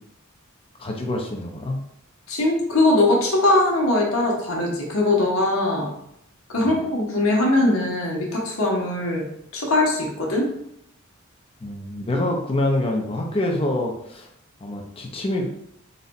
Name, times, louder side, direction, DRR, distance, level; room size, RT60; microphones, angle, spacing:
voice 1, 0.8-1.8 6.6-6.8 11.6-14.3 14.6-15.5, left 1 dB, 25° left, 1 dB, 0.6 m, -26 dB
voice 2, 2.3-5.9 6.5-9.2 9.5-10.5, left 2 dB, 80° left, -1 dB, 1.1 m, -21 dB
4.0 x 2.3 x 4.0 m, 0.74 s
head